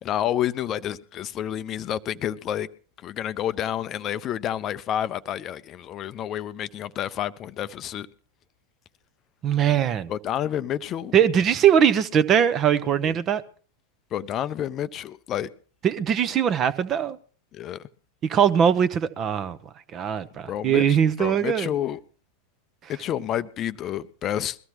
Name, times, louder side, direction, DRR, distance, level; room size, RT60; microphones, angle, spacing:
voice 1, 0.0-2.7 3.0-8.1 10.1-11.1 13.0-13.1 14.1-15.5 17.5-17.8 20.5-22.0 22.9-24.6, left 11 dB, 30° left, 0.6 m, -29 dB
voice 2, 9.4-10.1 11.1-13.4 15.8-17.2 18.2-19.6 19.9-21.7, right 8 dB, 30° right, 0.8 m, -21 dB
22.0 x 14.5 x 3.0 m
figure-of-eight pair, 90°, 0 cm